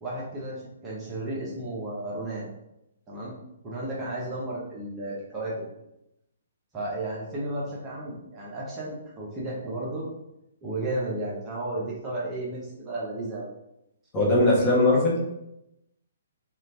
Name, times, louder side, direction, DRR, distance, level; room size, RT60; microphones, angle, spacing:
voice 1, 0.0-2.5 3.1-3.4 3.6-5.7 6.7-10.1 10.6-13.5, right 1 dB, 20° right, -6 dB, 0.8 m, -33 dB
voice 2, 14.1-15.2, left 2 dB, 25° left, -5 dB, 1.2 m, -20 dB
2.8 x 2.5 x 3.4 m, 0.85 s
hypercardioid pair, 145°, 0 cm